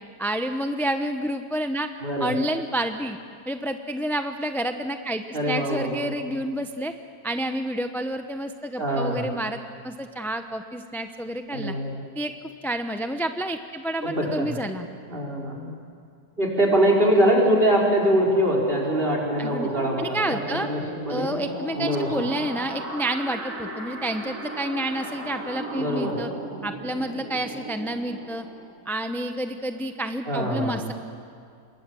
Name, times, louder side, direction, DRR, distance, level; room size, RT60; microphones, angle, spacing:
voice 1, 0.2-1.9 2.2-3.2 3.5-6.9 7.2-11.8 12.1-12.3 12.6-14.9 19.4-19.7 20.0-20.7 21.1-26.3 26.6-28.4 28.9-30.9, right 1 dB, ahead, 7 dB, 0.5 m, -29 dB
voice 2, 2.0-2.4 5.3-6.3 8.8-9.3 11.5-12.0 14.0-14.6 15.1-15.7 16.4-20.8 21.1-21.3 21.8-22.1 25.7-26.2 30.3-30.9, right 1 dB, 35° right, 0 dB, 5.0 m, -23 dB
sound 1, 16.6-29.0, right 2 dB, 70° right, 3.1 m, -37 dB
26.5 x 22.0 x 7.7 m, 2.3 s
omnidirectional pair, 1.7 m